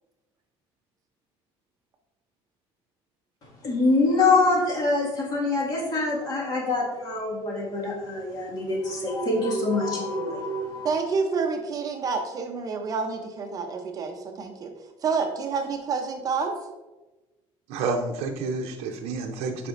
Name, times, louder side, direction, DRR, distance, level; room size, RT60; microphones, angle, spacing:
voice 1, 3.6-10.9, left 3 dB, 35° left, -3 dB, 1.8 m, -25 dB
voice 2, 10.8-14.7 15.0-16.6, right 5 dB, 35° right, 4 dB, 0.6 m, -28 dB
voice 3, 17.7-19.7, right 4 dB, 80° right, 2 dB, 0.6 m, -29 dB
8.1 x 5.0 x 2.5 m, 1.1 s
cardioid pair, 155°, 10 cm